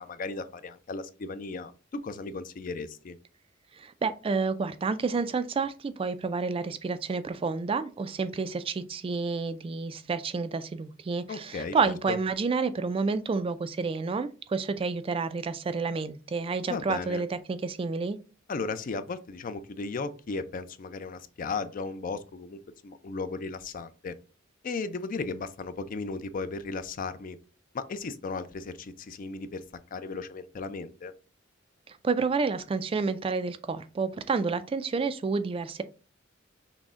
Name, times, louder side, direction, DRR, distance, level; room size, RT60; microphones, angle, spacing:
voice 1, 0.0-3.2 11.3-12.2 16.7-17.2 18.5-24.1 24.6-27.4 27.7-29.6 29.9-31.1, left 4 dB, 45° left, 12 dB, 0.4 m, -36 dB
voice 2, 3.8-18.2 31.9-35.8, right 4 dB, 30° right, 12 dB, 0.3 m, -29 dB
6.1 x 2.1 x 3.6 m, 0.35 s
head